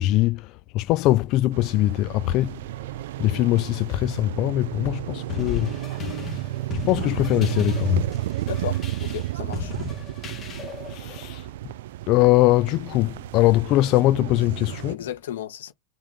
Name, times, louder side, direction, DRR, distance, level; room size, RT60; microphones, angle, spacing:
voice 1, 0.0-2.6 3.2-5.7 6.9-8.0 10.9-11.5 12.1-15.0, left 16 dB, 50° left, 0.3 m, -21 dB
sound 1, 1.5-14.9, right 15 dB, 75° right, 0.3 m, -32 dB
sound 2, 5.3-10.9, left 6 dB, 30° left, 1.8 m, -36 dB
voice 2, 8.5-9.7 14.9-15.7, left 12 dB, 85° left, 1.5 m, -34 dB
3.7 x 3.7 x 3.6 m
supercardioid pair, 125°, 0 cm